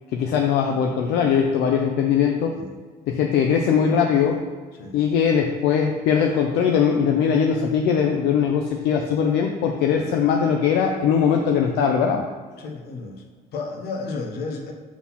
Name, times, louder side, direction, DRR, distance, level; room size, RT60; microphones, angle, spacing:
voice 1, 0.1-2.6 3.1-4.4 4.9-12.2, left 7 dB, 85° left, 2 dB, 0.6 m, -20 dB
voice 2, 12.6-13.2 13.5-14.7, left 3 dB, 70° left, 3 dB, 1.2 m, -32 dB
6.2 x 3.9 x 5.7 m, 1.5 s
cardioid pair, 110°, 17 cm